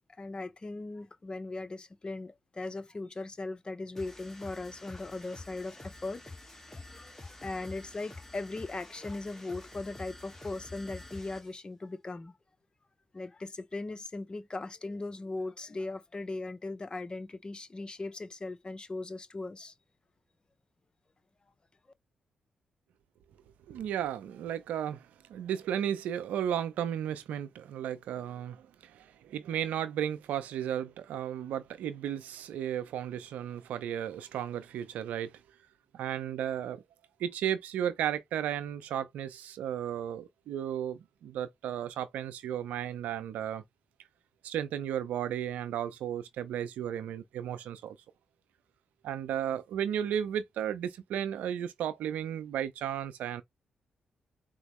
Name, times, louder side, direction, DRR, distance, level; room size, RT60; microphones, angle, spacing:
voice 1, 0.2-12.3 13.1-19.7, left 2 dB, 35° left, 0.7 m, -39 dB
sound 1, 4.0-11.5, left 2 dB, 15° left, 1.3 m, -48 dB
voice 2, 23.7-35.4 35.9-36.8 37.2-43.6 44.4-48.0 49.0-53.4, right 10 dB, 80° right, 0.5 m, -34 dB
4.1 x 2.0 x 3.0 m
supercardioid pair, 45°, 3 cm